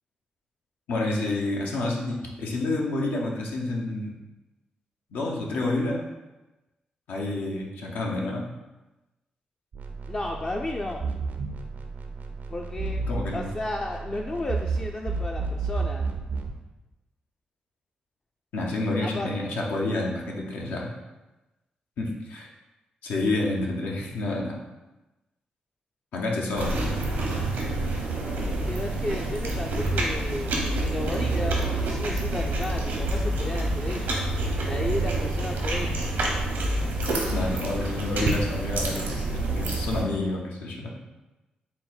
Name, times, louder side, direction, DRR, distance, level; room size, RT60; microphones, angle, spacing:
voice 1, 0.9-4.2 5.1-6.0 7.1-8.5 13.1-13.5 18.5-20.9 22.0-22.5 23.0-24.6 26.1-26.8 37.3-40.9, left 2 dB, 85° left, -1 dB, 0.7 m, -29 dB
sound 1, 9.7-16.6, right 4 dB, 65° right, 0.4 m, -32 dB
voice 2, 10.1-11.0 12.5-13.0 13.3-16.1 19.0-19.3 28.4-34.3 34.6-36.1, left 2 dB, 35° left, 0 dB, 0.4 m, -33 dB
sound 2, 26.5-40.0, right 2 dB, 85° right, 0.8 m, -27 dB
4.1 x 2.2 x 3.9 m, 1.0 s
supercardioid pair, 55°, 3 cm